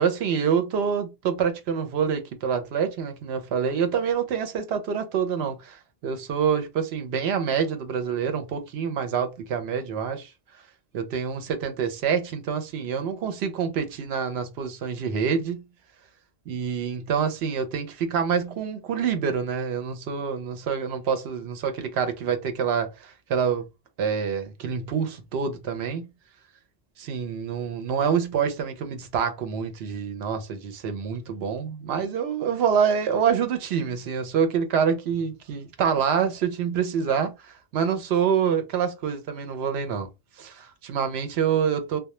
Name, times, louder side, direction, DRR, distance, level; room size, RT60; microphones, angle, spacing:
voice 1, 0.0-10.3 10.9-15.6 16.5-23.7 24.0-26.1 27.0-40.1 40.4-42.0, right 7 dB, 75° right, 0.8 m, -26 dB
2.2 x 2.1 x 2.9 m
omnidirectional pair, 1.1 m